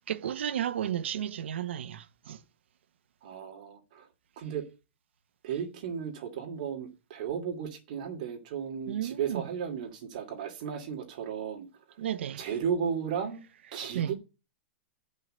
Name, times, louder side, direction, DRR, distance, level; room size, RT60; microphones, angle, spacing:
voice 1, 0.1-2.4 8.9-9.4 12.0-12.5 13.9-14.1, right 10 dB, 75° right, 0.9 m, -33 dB
voice 2, 3.2-4.1 4.4-4.6 5.4-11.7 12.4-13.4 13.7-14.1, right 7 dB, 40° right, 2.5 m, -34 dB
11.0 x 5.6 x 7.6 m
supercardioid pair, 180°, 6 cm